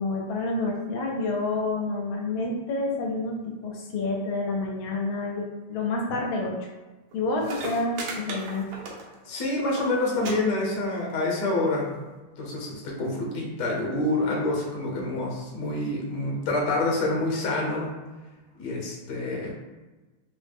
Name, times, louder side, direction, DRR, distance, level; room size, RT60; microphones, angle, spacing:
voice 1, 0.0-6.6 7.1-8.7, left 2 dB, 80° left, -1 dB, 1.3 m, -29 dB
sound 1, 7.1-7.2 7.4-9.3 9.6-9.9 10.2-10.3 10.6-11.1 11.9-12.0, right 3 dB, 80° right, 1.5 m, -36 dB
voice 2, 9.3-11.9 12.4-17.9 18.6-19.5, left 2 dB, 55° left, -2 dB, 1.1 m, -27 dB
4.0 x 2.1 x 3.3 m, 1.2 s
omnidirectional pair, 2.2 m